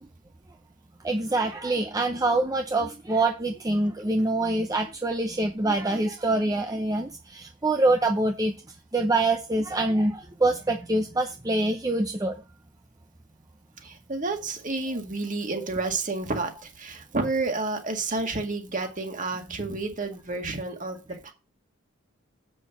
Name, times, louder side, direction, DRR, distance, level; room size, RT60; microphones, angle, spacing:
voice 1, 1.0-8.5 8.9-12.4, right 2 dB, 20° right, 0.7 m, -25 dB
voice 2, 13.8-21.3, right 3 dB, 40° right, 2.0 m, -30 dB
7.6 x 6.4 x 6.0 m
head